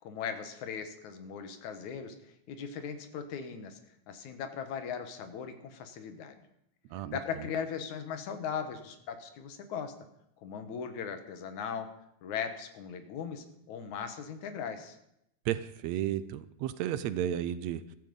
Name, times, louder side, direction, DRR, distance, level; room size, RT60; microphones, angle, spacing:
voice 1, 0.0-3.8 4.1-6.4 6.9-9.9 10.4-11.9 12.2-15.0, left 7 dB, 80° left, 9 dB, 2.8 m, -38 dB
voice 2, 15.5-18.0, right 11 dB, 75° right, 14 dB, 1.8 m, -33 dB
14.5 x 14.5 x 5.4 m, 0.80 s
omnidirectional pair, 3.3 m